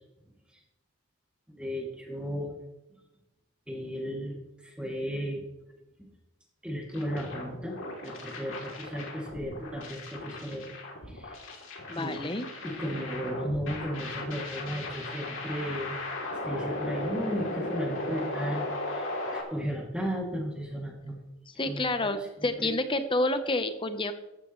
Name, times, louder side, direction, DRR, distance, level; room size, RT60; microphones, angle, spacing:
voice 1, 1.5-2.5 3.7-4.4 4.6-5.4 6.6-7.8 8.0-10.7 11.1-11.4 11.9-12.2 12.6-16.0 16.3-21.2 21.6-22.7, equal, 5° right, -1 dB, 2.5 m, -35 dB
sound 1, 6.9-19.4, left 2 dB, 65° left, 3.0 m, -37 dB
voice 2, 11.9-12.5 21.6-24.1, left 2 dB, 25° left, 9 dB, 0.9 m, -29 dB
15.0 x 12.0 x 3.2 m, 0.96 s
head